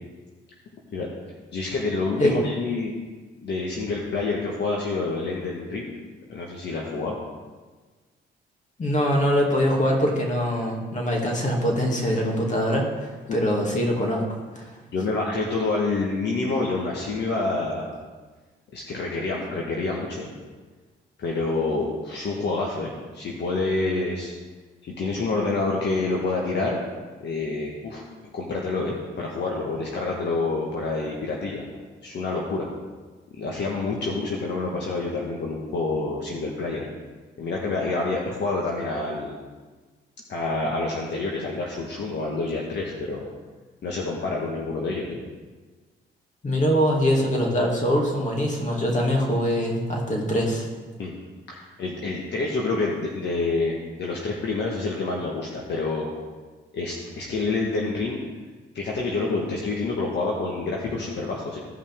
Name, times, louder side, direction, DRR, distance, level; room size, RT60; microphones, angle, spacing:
voice 1, 1.5-2.9 3.4-5.9 6.3-7.1 13.3-13.4 14.9-17.9 18.7-20.3 21.2-24.3 24.8-26.8 27.2-28.0 28.3-31.6 32.0-32.7 33.4-36.9 37.4-39.3 40.3-43.3 43.8-45.2 51.0-51.1 51.5-56.1 56.7-58.2 58.7-61.6, left 3 dB, 60° left, -2 dB, 1.5 m, -27 dB
voice 2, 8.8-14.2 14.6-14.7 46.4-50.7, equal, 40° left, -1 dB, 2.3 m, -23 dB
15.5 x 5.6 x 3.6 m, 1.4 s
cardioid pair, 90°, 20 cm